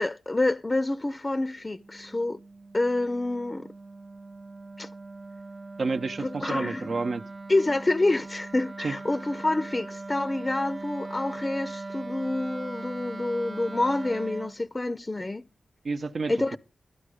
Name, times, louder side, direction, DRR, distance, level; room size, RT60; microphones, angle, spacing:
voice 1, 0.0-2.4 2.7-3.7 4.8-4.9 6.2-6.9 7.5-15.4 16.3-16.6, left 2 dB, 30° left, 0.5 m, -27 dB
Wind instrument woodwind instrument, 1.6-14.6, right 3 dB, 40° right, 0.6 m, -40 dB
voice 2, 5.8-7.2 8.8-9.0 15.8-16.4, right 3 dB, 65° right, 0.9 m, -29 dB
12.5 x 10.5 x 5.0 m
cardioid pair, 45°, 0 cm